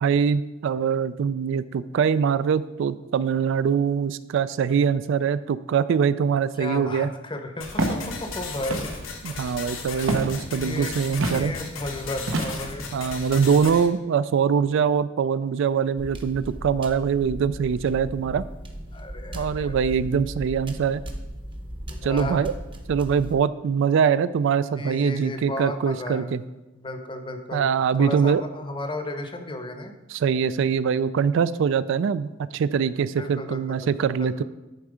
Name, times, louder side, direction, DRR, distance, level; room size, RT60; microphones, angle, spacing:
voice 1, 0.0-7.1 9.2-11.5 12.9-18.4 19.3-21.0 22.0-22.5 22.9-26.4 27.5-28.4 30.1-34.4, right 7 dB, 70° right, 15 dB, 0.3 m, -23 dB
voice 2, 6.6-8.8 9.9-10.3 10.5-12.8 18.9-19.7 21.9-22.5 24.8-26.3 26.7-27.7 28.0-29.9 33.2-33.9 34.2-34.4, left 1 dB, 25° left, 7 dB, 0.8 m, -34 dB
sound 1, 7.6-13.9, left 4 dB, 80° left, 1.2 m, -36 dB
Walk footsteps, 7.8-8.0 8.7-9.1 10.1-10.4 11.2-11.4 12.3-12.8, right 2 dB, 90° right, 1.0 m, -26 dB
sound 2, 16.0-23.3, equal, 25° right, 0.8 m, -37 dB
10.5 x 4.4 x 4.9 m, 1.0 s
head